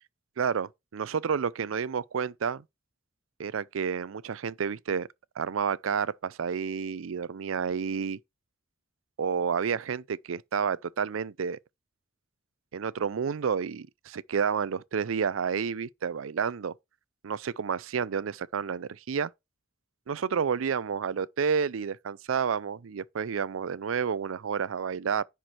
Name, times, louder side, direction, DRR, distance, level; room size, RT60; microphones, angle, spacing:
voice 1, 0.4-2.6 3.4-5.1 5.4-8.2 9.2-11.6 12.7-16.7 17.2-19.3 20.1-25.2, right 6 dB, 85° right, 0.5 m, -30 dB
10.5 x 4.8 x 4.4 m
head